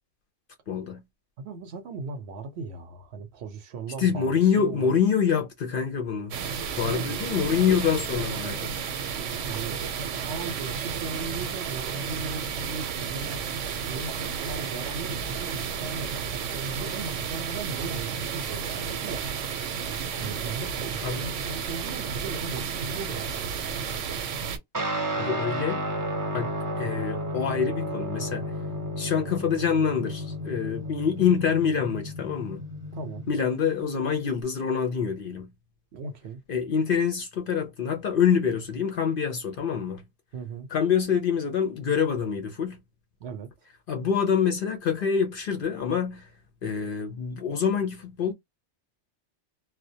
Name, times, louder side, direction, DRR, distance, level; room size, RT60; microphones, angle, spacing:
voice 1, 0.7-1.0 4.0-6.4 6.8-8.7 21.0-21.2 25.2-25.8 26.3-28.5 29.0-32.6 33.3-35.5 36.5-40.0 40.7-42.8 43.9-46.3 46.6-48.3, left 7 dB, 60° left, 0.6 m, -26 dB
voice 2, 1.4-5.0 6.8-8.5 9.4-13.4 13.9-19.4 20.2-23.8 32.9-33.3 35.9-36.4 40.3-40.7 43.2-43.5, right 4 dB, 70° right, 0.8 m, -38 dB
sound 1, 6.3-24.6, right 6 dB, 90° right, 1.0 m, -32 dB
Guitar, 24.7-34.4, equal, 20° right, 0.6 m, -33 dB
2.2 x 2.1 x 2.6 m
omnidirectional pair, 1.2 m